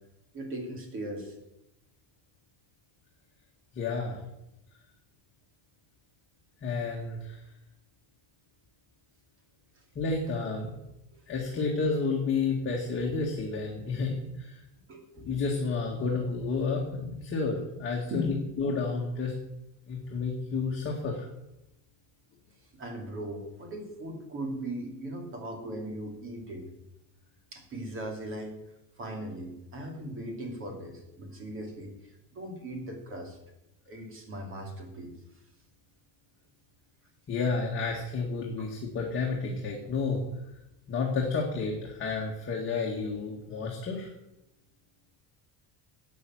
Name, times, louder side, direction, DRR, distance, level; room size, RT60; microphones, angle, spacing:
voice 1, 0.3-1.4 9.7-9.8 11.1-12.0 14.9-15.3 18.1-18.5 22.7-26.7 27.5-28.6 29.0-33.4 33.9-35.1 38.6-38.7 39.4-39.5, right 1 dB, 25° right, 3 dB, 2.9 m, -39 dB
voice 2, 3.7-4.2 6.6-7.4 10.0-10.8 11.3-14.6 15.2-19.3 19.9-21.3 37.3-40.2 40.9-44.1, left 4 dB, 25° left, -1 dB, 2.0 m, -31 dB
12.0 x 8.6 x 7.8 m, 0.88 s
cardioid pair, 175°, 45 cm